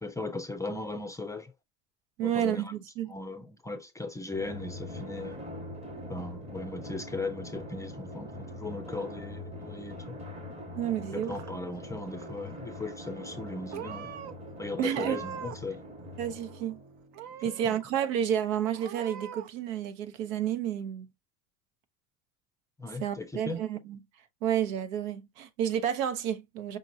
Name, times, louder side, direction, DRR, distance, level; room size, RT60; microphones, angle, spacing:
voice 1, 0.0-1.5 2.2-2.7 3.1-5.4 6.1-10.2 11.1-14.1 14.6-15.8 17.4-17.8 22.8-23.6, left 2 dB, 10° left, 0.5 m, -38 dB
voice 2, 2.2-3.2 10.7-11.3 14.8-15.2 16.2-16.8 17.4-21.1 23.0-24.0 24.4-26.8, right 10 dB, 85° right, 0.9 m, -30 dB
Drum, 4.3-17.4, left 1 dB, 15° right, 1.0 m, -43 dB
Purr / Meow, 10.9-11.8 12.1-12.6 13.3-13.5 13.7-14.3 14.8-15.7 16.0-16.7 17.1-17.7 18.2-18.3 18.7-19.5, right 10 dB, 60° right, 0.8 m, -42 dB
5.2 x 2.9 x 2.6 m
supercardioid pair, 125°, 39 cm